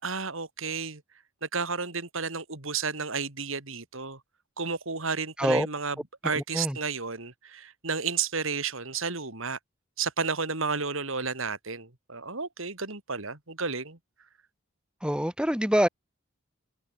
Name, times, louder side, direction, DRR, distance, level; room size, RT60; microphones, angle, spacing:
voice 1, 0.0-1.0 1.4-4.2 4.6-5.9 6.2-9.6 10.0-14.0, right 5 dB, 65° right, 3.3 m, -32 dB
voice 2, 6.3-6.8 15.0-15.9, equal, 5° right, 3.4 m, -25 dB
head